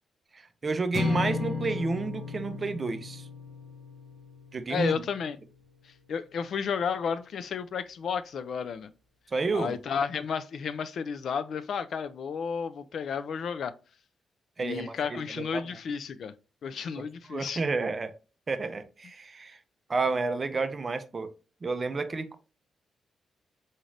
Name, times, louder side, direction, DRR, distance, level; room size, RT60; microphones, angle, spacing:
voice 1, 0.3-3.3 4.5-4.9 9.3-9.8 14.6-15.6 17.3-18.1 18.5-19.6 19.9-21.3 21.6-22.4, right 3 dB, 30° right, 0.4 m, -30 dB
sound 1, 0.9-5.3, left 3 dB, 35° left, 0.9 m, -34 dB
voice 2, 4.7-5.4 5.8-8.9 9.5-13.7 14.6-16.3 16.6-17.6, left 6 dB, 60° left, 0.3 m, -32 dB
4.0 x 2.5 x 3.2 m
cardioid pair, 130°, 0 cm